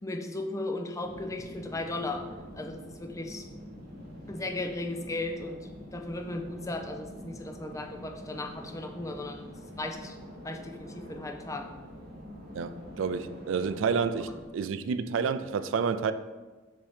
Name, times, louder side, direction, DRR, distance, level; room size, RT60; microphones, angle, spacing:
voice 1, 0.0-2.2 2.6-3.4 4.3-5.6 5.9-10.2 10.4-11.7, left 2 dB, 15° left, 0.5 m, -36 dB
sound 1, 1.0-14.5, equal, 55° right, 1.3 m, -46 dB
voice 2, 12.5-16.1, right 6 dB, 85° right, 0.3 m, -29 dB
7.2 x 2.8 x 4.8 m
head